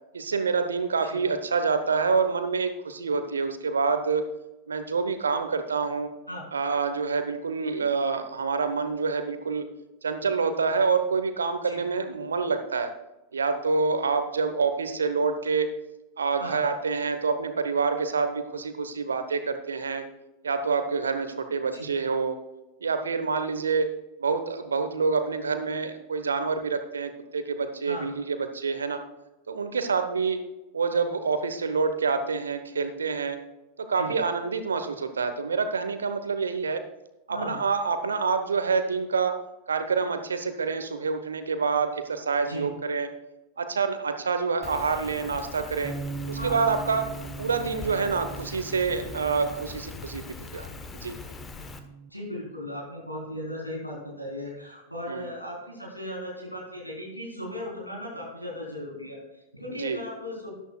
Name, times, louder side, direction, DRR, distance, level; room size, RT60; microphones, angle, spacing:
voice 1, 0.1-4.2 4.7-6.1 6.5-9.7 10.0-12.9 13.3-15.7 16.2-20.0 20.4-22.4 22.8-23.9 24.2-29.0 29.5-30.4 30.7-33.4 33.9-36.8 37.3-39.4 39.7-43.1 43.6-45.9 46.3-47.1 47.4-50.3 50.5-50.7 51.0-51.1 55.1-55.3 59.8-60.0, right 5 dB, 70° right, 9 dB, 0.9 m, -27 dB
voice 2, 37.3-37.6 42.4-42.7 46.4-46.6 52.1-60.5, left 1 dB, 90° left, -3 dB, 3.7 m, -37 dB
Rain, 44.6-51.8, left 4 dB, 20° left, 1.0 m, -41 dB
sound 1, 45.8-52.1, right 6 dB, 10° right, 0.7 m, -41 dB
13.5 x 11.0 x 2.3 m, 1.0 s
figure-of-eight pair, 90°, 0 cm